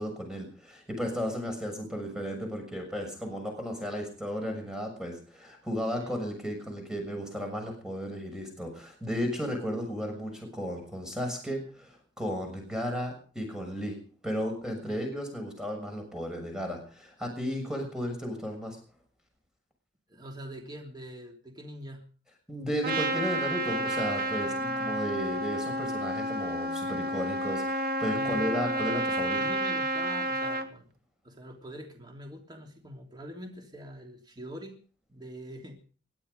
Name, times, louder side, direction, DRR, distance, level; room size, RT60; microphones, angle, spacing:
voice 1, 0.0-14.0 14.2-18.8 22.5-29.4, equal, 5° right, 3 dB, 6.6 m, -34 dB
voice 2, 20.1-22.1 24.4-25.2 28.1-28.4 29.4-30.9 31.2-34.8 35.1-35.8, equal, 25° right, 2 dB, 3.0 m, -44 dB
Trumpet, 22.8-30.7, right 1 dB, 55° right, 1.8 m, -30 dB
21.5 x 12.5 x 5.3 m, 0.40 s
head